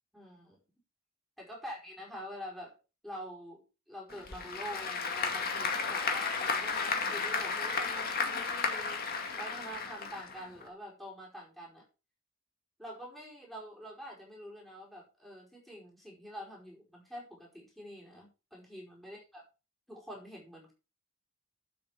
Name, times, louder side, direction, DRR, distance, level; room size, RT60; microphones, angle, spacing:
voice 1, 0.1-0.6 1.4-2.8 3.0-9.0 9.4-11.8 12.8-19.4 19.9-20.7, equal, ahead, -3 dB, 5.1 m, -46 dB
Applause / Crowd, 4.1-10.7, left 5 dB, 50° left, 2.3 m, -33 dB
9.3 x 8.0 x 6.0 m, 0.31 s
head